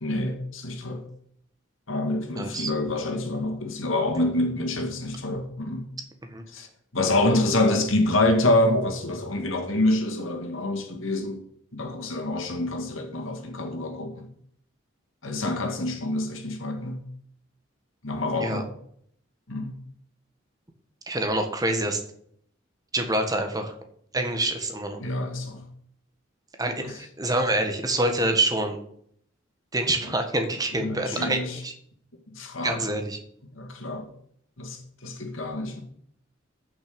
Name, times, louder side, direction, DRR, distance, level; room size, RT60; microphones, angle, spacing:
voice 1, 0.0-1.0 1.9-5.9 6.5-6.7 6.9-11.4 11.7-14.3 15.2-17.0 18.0-18.7 19.5-19.7 25.0-25.6 26.8-27.0 30.8-31.6 32.3-32.9 33.5-34.1 34.6-35.8, left 2 dB, 80° left, 2.2 m, -26 dB
voice 2, 2.3-2.7 6.3-6.4 18.4-18.6 21.1-22.0 22.9-23.7 24.1-25.0 26.6-28.8 29.7-31.7 32.6-33.2, right 2 dB, 20° right, 1.4 m, -26 dB
14.5 x 6.1 x 5.3 m
head